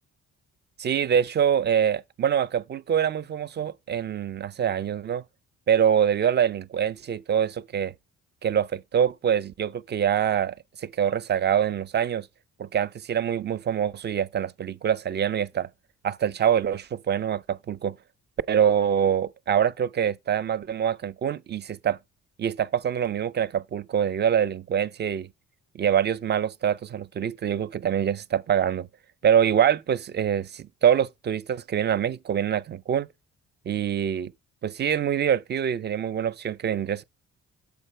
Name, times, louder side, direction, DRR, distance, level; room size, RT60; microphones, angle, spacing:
voice 1, 0.8-5.2 5.7-7.9 8.4-12.3 12.6-15.7 16.0-18.0 18.5-22.0 22.4-25.3 25.7-28.9 29.2-33.1 33.7-34.3 34.6-37.0, right 9 dB, 35° right, 0.4 m, -25 dB
7.1 x 4.5 x 4.4 m
cardioid pair, 90°, 30 cm